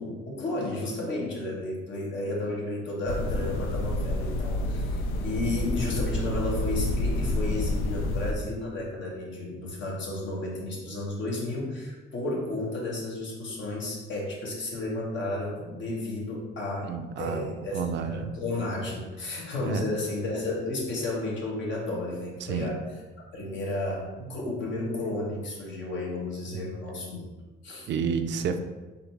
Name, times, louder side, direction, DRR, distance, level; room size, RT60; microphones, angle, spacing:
voice 1, 0.0-16.9 17.2-22.8 23.3-27.2 27.6-27.9, left 2 dB, 70° left, -3 dB, 1.4 m, -32 dB
sound 1, 3.1-8.3, left 1 dB, 90° left, 0.4 m, -28 dB
voice 2, 16.8-17.5 17.7-18.3 19.6-19.8 22.5-22.7 26.5-26.7 27.9-28.6, right 6 dB, 65° right, 8 dB, 0.4 m, -30 dB
3.9 x 2.8 x 4.5 m, 1.2 s
cardioid pair, 90°, 20 cm